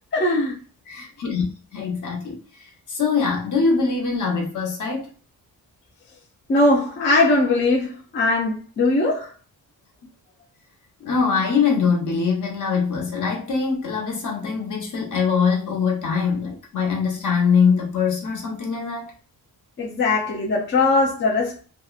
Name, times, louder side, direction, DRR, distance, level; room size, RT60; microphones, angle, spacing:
voice 1, 0.1-0.6 6.5-9.3 19.8-21.6, left 2 dB, 35° left, 0.4 m, -20 dB
voice 2, 0.9-1.5 1.7-5.1 11.0-19.1, left 5 dB, 55° left, 0.9 m, -23 dB
2.8 x 2.1 x 2.3 m
wide cardioid pair, 155°, 36 cm